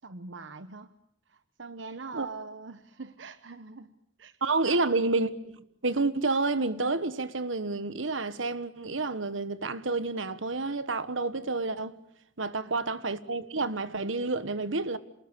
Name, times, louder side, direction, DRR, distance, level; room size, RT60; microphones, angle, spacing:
voice 1, 0.0-0.9 1.3-3.9 4.2-4.4 4.6-5.0 12.4-12.8, right 4 dB, 70° right, 1.0 m, -43 dB
voice 2, 4.4-12.0 12.4-15.0, right 3 dB, 85° right, 1.5 m, -29 dB
27.5 x 20.0 x 8.3 m
head